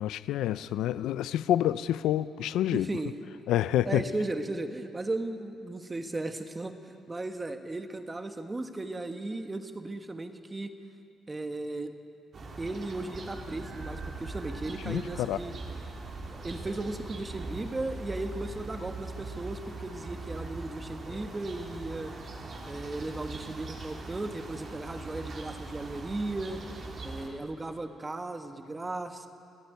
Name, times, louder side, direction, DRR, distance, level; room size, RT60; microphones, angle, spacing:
voice 1, 0.0-2.9 3.5-4.0 14.8-15.4, left 12 dB, 90° left, 0.5 m, -28 dB
voice 2, 2.7-3.1 3.8-6.7 7.1-10.7 11.3-11.9 12.6-15.5 16.4-22.1 22.7-26.6 27.0-29.3, right 2 dB, 20° right, 1.5 m, -36 dB
sound 1, 12.3-27.3, right 3 dB, 50° right, 3.1 m, -41 dB
28.5 x 9.8 x 9.3 m
cardioid pair, 90°, 0 cm